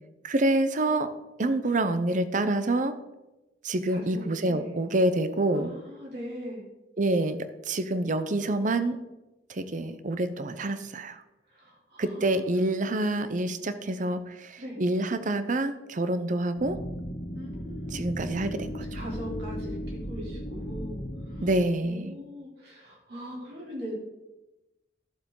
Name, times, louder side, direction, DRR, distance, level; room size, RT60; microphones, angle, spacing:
voice 1, 0.2-1.1 1.4-2.9 3.6-5.7 7.0-7.4 7.7-9.0 9.5-11.2 12.0-16.8 17.9-19.0 21.4-22.1, right 2 dB, 45° right, 11 dB, 0.7 m, -27 dB
voice 2, 3.9-4.7 5.5-6.6 11.5-12.4 14.6-14.8 17.3-18.1 18.9-21.5 21.8-23.9, equal, 65° right, -3 dB, 3.3 m, -41 dB
sound 1, 16.6-21.5, equal, 55° left, 1.7 m, -36 dB
12.0 x 7.3 x 3.8 m, 1.0 s
head